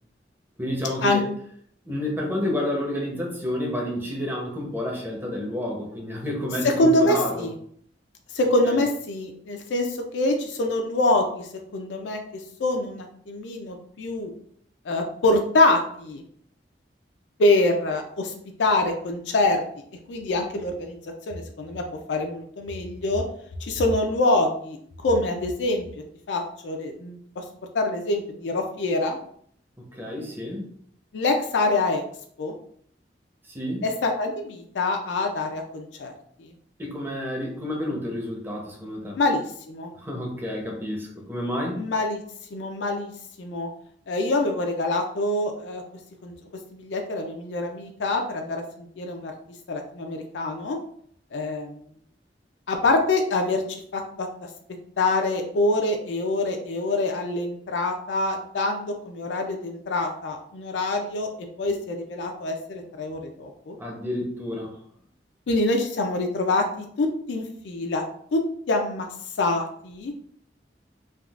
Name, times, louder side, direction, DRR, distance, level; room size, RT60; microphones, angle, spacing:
voice 1, 0.6-1.3 1.8-7.5 8.6-8.8 29.8-30.7 33.5-33.9 36.8-39.2 40.0-41.8 63.8-64.8, left 1 dB, 10° right, -1 dB, 0.7 m, -30 dB
voice 2, 6.6-7.5 8.3-11.5 11.7-12.2 12.6-14.3 14.9-16.2 17.4-18.3 18.6-19.6 20.1-21.0 21.3-21.8 22.1-23.2 23.6-25.8 26.3-27.2 27.7-29.2 31.1-32.0 32.4-32.5 33.8-36.1 39.2-39.9 41.8-42.2 42.5-43.1 43.4-43.7 44.1-45.8 46.2-46.3 46.7-49.3 49.7-50.8 51.3-51.8 52.7-54.3 55.0-61.3 61.6-63.8 65.5-68.0 68.3-68.4 68.7-69.1 69.4-70.1, left 2 dB, 90° left, 3 dB, 0.4 m, -25 dB
3.5 x 2.3 x 2.3 m, 0.63 s
head